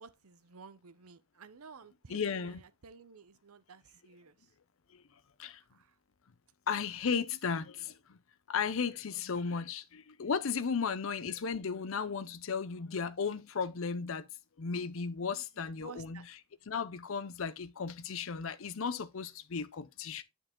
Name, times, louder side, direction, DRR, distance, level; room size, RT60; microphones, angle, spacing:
voice 1, 0.0-4.5 5.7-6.0 15.3-16.3, right 5 dB, 85° right, 0.7 m, -53 dB
voice 2, 2.1-2.6 4.9-5.0 5.4-5.6 6.7-8.2 8.5-14.3 14.6-16.2 16.7-20.2, left 6 dB, 65° left, 0.5 m, -35 dB
8.8 x 4.7 x 3.7 m
head